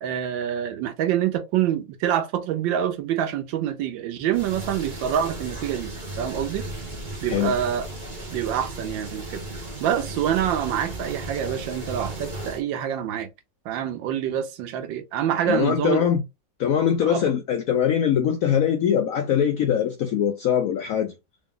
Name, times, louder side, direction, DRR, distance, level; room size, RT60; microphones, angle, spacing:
voice 1, 0.0-6.7 7.2-7.9 8.3-9.4 9.8-13.3 13.6-16.1 17.1-17.2, right 10 dB, 85° right, 1.4 m, -26 dB
sound 1, 4.3-12.6, right 2 dB, 35° right, 0.9 m, -35 dB
voice 2, 15.5-16.2 16.6-21.1, left 8 dB, 80° left, 0.7 m, -22 dB
3.8 x 2.3 x 3.6 m
omnidirectional pair, 2.0 m